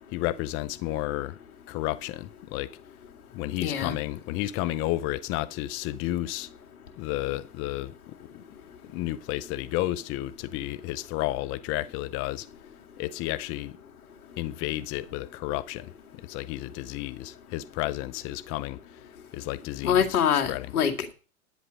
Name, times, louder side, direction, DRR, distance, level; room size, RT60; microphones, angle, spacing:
voice 1, 0.1-1.4 1.7-2.7 3.3-6.5 7.0-7.9 8.2-8.4 8.9-12.5 13.0-13.8 14.4-15.9 16.2-20.7, left 15 dB, 30° left, 0.5 m, -32 dB
voice 2, 3.6-3.9 19.8-21.1, left 8 dB, 70° left, 2.2 m, -24 dB
10.5 x 9.4 x 5.1 m
hypercardioid pair, 115°, 45 cm